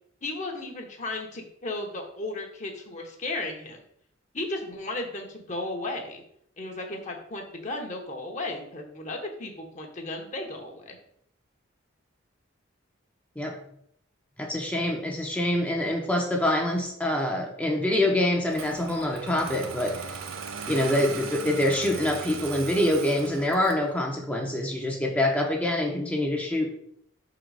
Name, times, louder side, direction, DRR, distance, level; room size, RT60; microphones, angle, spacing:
voice 1, 0.2-3.8 4.3-6.2 6.6-11.0, left 2 dB, 35° left, 2 dB, 0.9 m, -35 dB
voice 2, 14.4-20.2 20.7-26.7, left 1 dB, 5° left, 0 dB, 0.6 m, -25 dB
Engine starting, 18.5-23.9, right 5 dB, 85° right, 0.6 m, -38 dB
5.9 x 3.8 x 4.7 m, 0.71 s
head